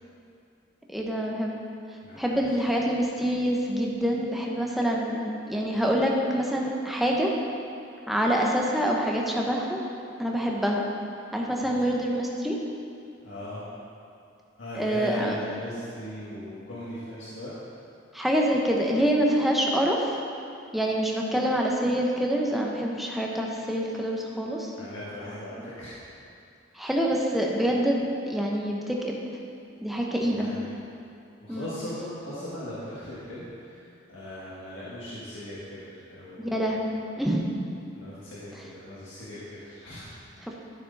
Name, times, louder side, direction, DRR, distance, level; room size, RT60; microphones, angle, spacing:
voice 1, 0.9-1.5 2.2-7.3 8.1-9.8 10.2-10.8 11.3-12.6 14.8-15.4 18.1-20.2 20.7-24.7 26.8-29.2 29.8-30.5 31.5-31.7 36.4-37.5, equal, ahead, -2 dB, 0.8 m, -26 dB
voice 2, 2.0-2.8 11.6-11.9 13.2-13.6 14.6-17.5 24.8-26.0 30.3-30.7 31.4-36.8 37.9-40.5, left 1 dB, 75° left, -10 dB, 1.7 m, -39 dB
12.0 x 6.2 x 4.0 m, 2.5 s
head